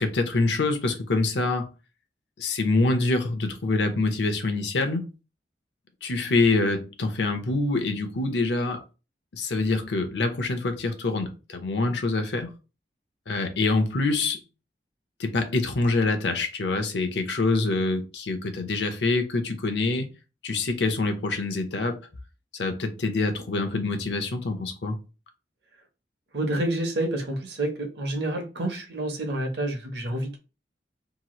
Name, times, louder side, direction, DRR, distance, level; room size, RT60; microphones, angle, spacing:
voice 1, 0.0-1.7 2.4-5.1 6.0-8.8 9.3-12.5 13.3-14.4 15.2-20.1 20.4-22.0 22.5-25.0, left 3 dB, 75° left, 0.6 m, -25 dB
voice 2, 26.3-30.4, right 1 dB, 65° right, 0.8 m, -28 dB
2.9 x 2.4 x 2.9 m
head